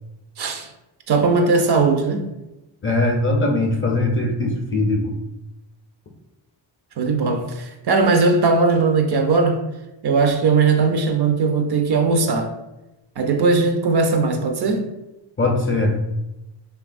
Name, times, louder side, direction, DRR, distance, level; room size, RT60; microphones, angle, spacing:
voice 1, 0.4-0.7 1.1-2.3 7.0-9.6 10.0-12.5 13.2-14.9, right 4 dB, 60° right, 0.5 m, -19 dB
voice 2, 2.8-5.2 15.4-16.0, left 2 dB, 30° left, 0.4 m, -20 dB
3.2 x 2.2 x 2.4 m
cardioid pair, 90°, 46 cm